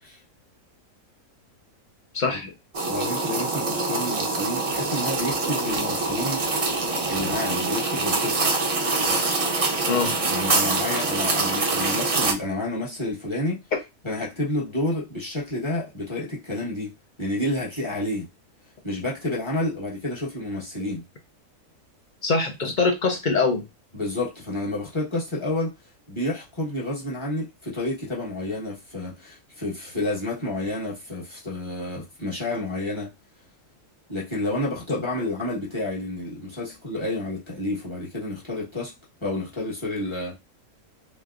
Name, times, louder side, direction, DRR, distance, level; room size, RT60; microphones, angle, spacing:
voice 1, 2.1-2.5 9.9-10.1 22.2-23.7, left 4 dB, 55° left, 0.5 m, -23 dB
sound 1, 2.7-12.3, right 3 dB, 55° right, 0.3 m, -25 dB
voice 2, 2.9-6.4 7.1-8.5 10.3-13.6 14.0-16.9 17.2-18.3 18.8-21.0 23.9-25.7 26.1-33.1 34.1-38.9 39.2-40.4, left 1 dB, 20° left, 1.1 m, -30 dB
3.2 x 3.2 x 2.4 m
omnidirectional pair, 1.6 m